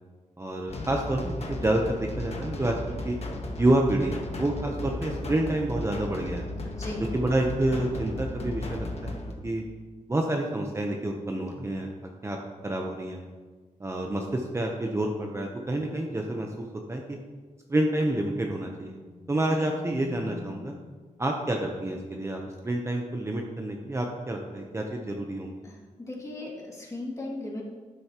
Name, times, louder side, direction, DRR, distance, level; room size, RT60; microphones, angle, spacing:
voice 1, 0.4-3.2 3.6-6.5 7.1-9.2 9.4-9.6 10.1-11.9 12.2-12.4 12.6-13.3 13.8-17.2 17.7-19.0 19.3-20.7 21.2-22.4 22.6-25.6, right 1 dB, 20° right, 1 dB, 0.8 m, -28 dB
sound 1, 0.7-9.3, left 2 dB, 50° left, 1.3 m, -35 dB
sound 2, 18.6-21.2, left 6 dB, 85° left, 1.5 m, -45 dB
voice 2, 25.6-27.7, left 2 dB, 25° left, -3 dB, 2.5 m, -37 dB
12.0 x 10.0 x 3.0 m, 1.4 s
wide cardioid pair, 135°, 13 cm